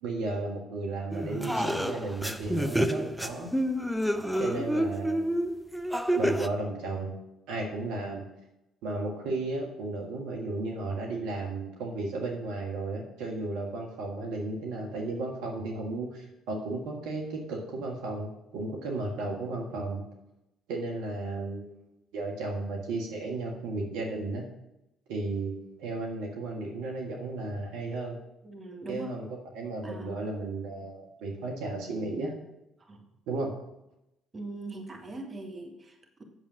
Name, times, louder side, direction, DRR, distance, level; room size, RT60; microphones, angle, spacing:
voice 1, 0.0-3.5 4.4-5.3 6.1-7.1 7.5-8.2 8.8-20.0 20.7-21.7 22.1-24.4 25.1-28.2 28.9-29.2 29.5-32.3 33.3-33.5, right 2 dB, 65° right, 0 dB, 1.6 m, -34 dB
sound 1, 1.1-6.5, equal, ahead, 0.6 m, -29 dB
voice 2, 28.4-29.1 29.8-30.2 32.8-33.0 34.3-36.2, right 2 dB, 30° right, 2 dB, 2.0 m, -41 dB
8.1 x 7.2 x 6.2 m, 0.88 s
figure-of-eight pair, 50°, 0 cm